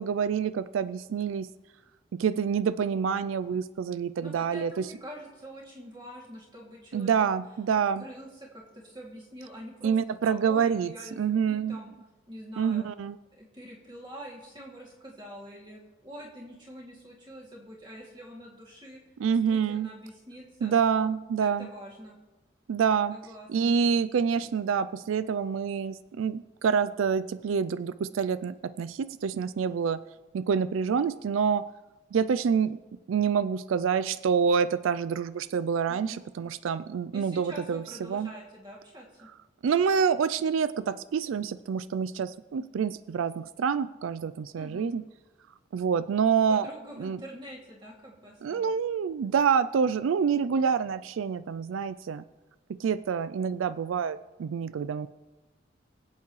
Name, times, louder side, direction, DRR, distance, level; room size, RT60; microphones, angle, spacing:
voice 1, 0.0-1.5 2.1-4.9 6.9-8.0 9.8-11.8 12.6-13.2 19.2-19.9 20.6-21.7 22.7-23.2 23.5-30.0 30.3-31.7 32.1-32.8 33.1-38.3 39.6-45.0 45.7-46.7 47.0-47.2 48.4-52.2 52.8-55.1, right 6 dB, 90° right, 14 dB, 0.4 m, -27 dB
voice 2, 4.2-7.3 7.7-10.0 10.2-11.9 12.3-12.9 13.3-20.7 21.4-22.2 23.1-23.7 35.9-36.2 37.1-39.3 44.6-44.9 46.5-48.7, equal, 25° right, -2 dB, 2.5 m, -45 dB
24.5 x 8.3 x 3.2 m, 1.1 s
head